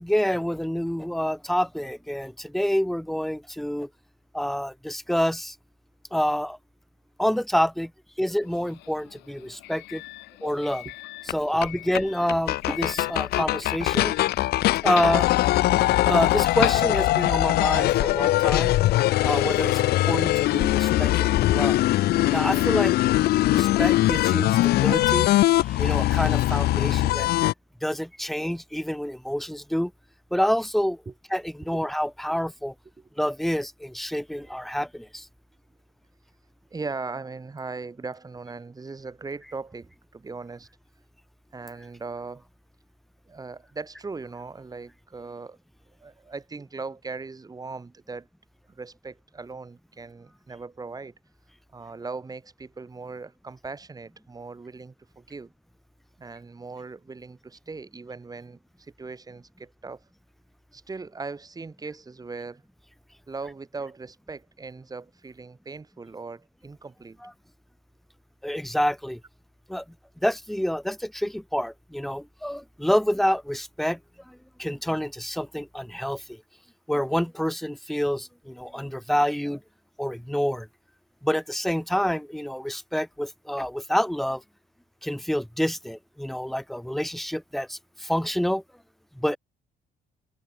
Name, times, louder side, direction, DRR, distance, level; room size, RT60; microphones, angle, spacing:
voice 1, 0.0-3.9 4.3-5.6 6.1-6.6 7.2-7.9 8.2-10.0 10.4-10.8 11.3-14.2 14.8-15.3 16.1-18.7 19.2-21.8 22.3-22.9 23.5-27.3 27.8-29.9 30.3-31.0 31.3-32.7 33.2-35.3 67.2-67.3 68.4-69.2 69.7-69.8 70.2-74.0 74.3-76.4 76.9-79.6 80.0-80.7 81.2-84.4 85.0-88.6 89.2-89.4, equal, ahead, 0.7 m, -27 dB
Doorbell, 8.4-17.5, left 20 dB, 90° left, 1.1 m, -37 dB
sound 1, 11.3-11.4 11.6-11.7 11.9-12.0 12.3-27.5, left 16 dB, 70° left, 0.7 m, -21 dB
voice 2, 36.7-40.7 41.5-42.4 43.3-45.6 46.0-48.3 48.7-51.1 51.7-55.5 56.2-60.0 60.7-62.6 63.3-67.2, right 4 dB, 20° right, 6.1 m, -39 dB
cardioid pair, 110°, 17 cm